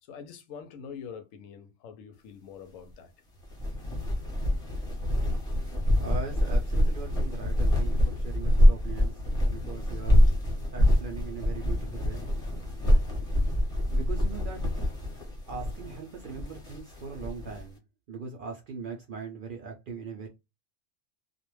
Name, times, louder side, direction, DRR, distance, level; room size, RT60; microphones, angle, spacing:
voice 1, 0.0-3.1, left 7 dB, 90° left, 1.0 m, -44 dB
sound 1, 3.4-17.6, left 1 dB, 30° left, 0.9 m, -25 dB
voice 2, 6.0-9.1 9.5-10.4 10.7-12.3 13.9-14.7 15.2-17.8 18.1-20.3, right 5 dB, 65° right, 0.5 m, -40 dB
2.3 x 2.1 x 3.0 m
omnidirectional pair, 1.3 m